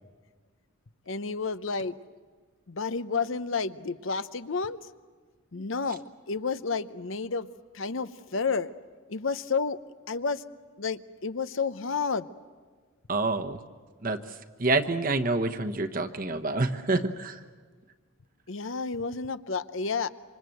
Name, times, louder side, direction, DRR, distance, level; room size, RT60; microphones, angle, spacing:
voice 1, 1.1-1.9 2.7-4.9 5.5-7.5 7.7-8.7 9.1-9.8 10.1-10.4 10.8-12.3 18.5-20.1, left 4 dB, 70° left, 13 dB, 0.8 m, -30 dB
voice 2, 13.1-13.6 14.0-14.2 14.6-17.4, right 2 dB, 40° right, 7 dB, 1.1 m, -27 dB
27.0 x 25.0 x 7.8 m, 1.4 s
head